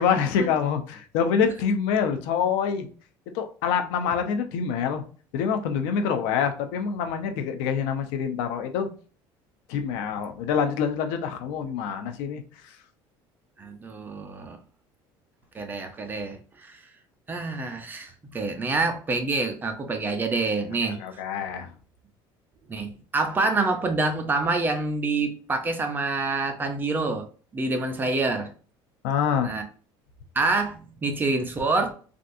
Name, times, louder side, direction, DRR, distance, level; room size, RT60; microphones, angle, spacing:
voice 1, 0.0-2.9 3.3-5.0 5.3-8.9 9.7-12.4 20.8-21.7 29.0-29.5, left 7 dB, 90° left, 0.6 m, -26 dB
voice 2, 13.6-14.6 15.5-16.8 17.3-21.0 22.7-27.3 27.5-28.5 29.4-29.6 30.3-31.9, right 3 dB, 20° right, 0.6 m, -27 dB
3.4 x 2.5 x 2.6 m
cardioid pair, 145°, 10 cm